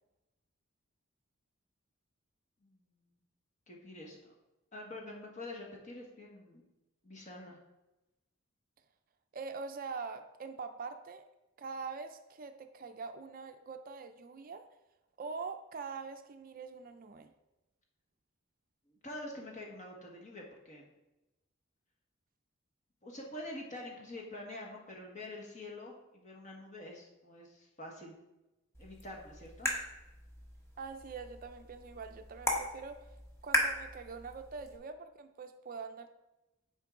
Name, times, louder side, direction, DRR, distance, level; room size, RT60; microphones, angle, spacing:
voice 1, 2.6-3.0 3.7-4.3 4.7-6.6 7.0-7.6 18.9-20.9 23.0-28.1 28.8-29.7, left 1 dB, 40° left, -1 dB, 1.4 m, -46 dB
voice 2, 9.3-11.2 11.6-14.7 15.2-17.3 30.8-33.1 33.4-36.1, right 4 dB, 45° right, 8 dB, 0.4 m, -44 dB
sound 1, 28.7-34.8, equal, 15° left, 1.1 m, -38 dB
9.6 x 4.5 x 3.7 m, 0.98 s
head